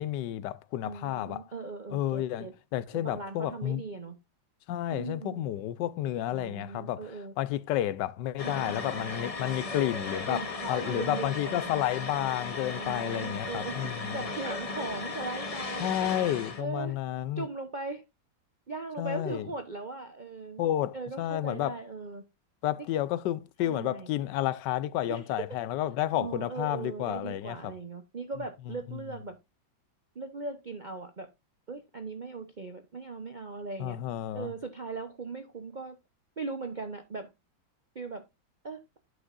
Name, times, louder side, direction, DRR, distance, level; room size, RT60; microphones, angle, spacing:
voice 1, 0.0-1.4 1.9-3.8 4.7-7.1 7.4-14.2 15.8-17.5 19.0-19.5 20.6-21.8 22.6-27.7 28.9-29.0 33.8-34.5, left 12 dB, 70° left, 1.2 m, -31 dB
voice 2, 0.8-2.5 2.9-4.2 4.9-5.4 6.3-7.3 8.4-9.0 10.3-11.8 12.6-16.1 16.6-17.0 17.4-18.0 18.7-20.7 20.9-22.2 22.8-22.9 23.6-24.1 25.1-25.5 26.1-29.4 30.1-31.3 31.7-34.0 34.3-36.0 36.4-37.3 37.9-38.2 38.6-39.0, right 3 dB, 75° right, 0.4 m, -39 dB
sound 1, 8.4-16.6, left 3 dB, 55° left, 0.4 m, -36 dB
11.5 x 6.1 x 2.4 m
omnidirectional pair, 2.2 m